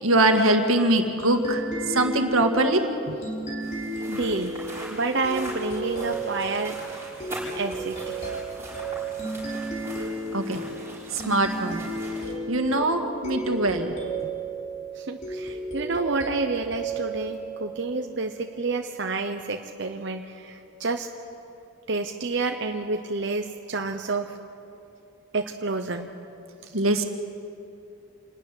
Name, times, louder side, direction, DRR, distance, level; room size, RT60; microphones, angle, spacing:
voice 1, 0.0-1.6 1.9-2.8 10.3-10.6 11.1-11.8 12.5-14.0 26.7-27.0, right 2 dB, 90° right, 5 dB, 1.9 m, -22 dB
sound 1, 1.2-18.4, right 2 dB, 35° left, 5.1 m, -34 dB
sound 2, 3.6-12.3, right 1 dB, 10° right, 6.3 m, -41 dB
voice 2, 4.1-4.5 4.9-8.3 14.9-21.1 21.9-24.4 25.3-26.1 26.6-26.7, right 3 dB, 55° right, 4 dB, 0.9 m, -29 dB
27.0 x 13.0 x 9.9 m, 2.7 s
head